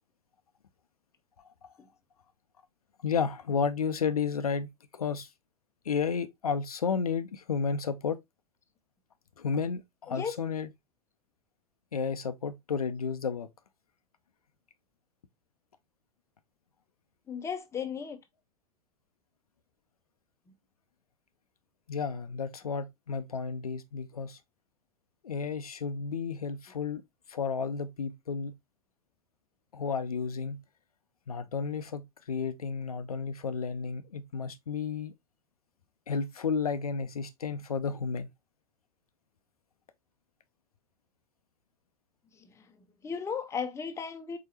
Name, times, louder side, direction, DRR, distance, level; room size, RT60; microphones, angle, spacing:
voice 1, 3.0-4.7 4.9-5.3 5.9-8.2 9.4-10.7 11.9-13.5 21.9-24.4 25.2-27.0 27.3-28.5 29.7-30.6 31.3-35.1 36.1-38.3, left 5 dB, 75° left, 0.5 m, -32 dB
voice 2, 17.3-18.2 42.3-42.7 43.0-44.4, left 6 dB, 15° left, 0.7 m, -35 dB
4.7 x 4.0 x 2.8 m
figure-of-eight pair, 85°, 19 cm